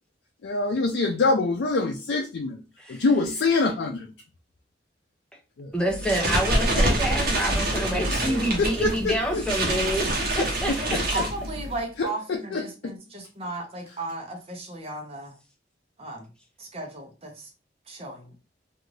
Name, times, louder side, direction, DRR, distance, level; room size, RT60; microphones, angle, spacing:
voice 1, 0.4-2.6 2.9-4.1 5.6-5.7 8.1-9.5 10.4-11.0 12.0-12.9, left 3 dB, 80° left, 0.4 m, -26 dB
voice 2, 5.7-11.2, equal, 5° left, 0.6 m, -28 dB
sound 1, 5.9-11.8, right 1 dB, 55° right, 1.0 m, -26 dB
voice 3, 10.8-15.3 16.0-16.3 16.6-17.5 17.9-18.4, right 2 dB, 35° right, 0.8 m, -35 dB
2.6 x 2.4 x 3.1 m
head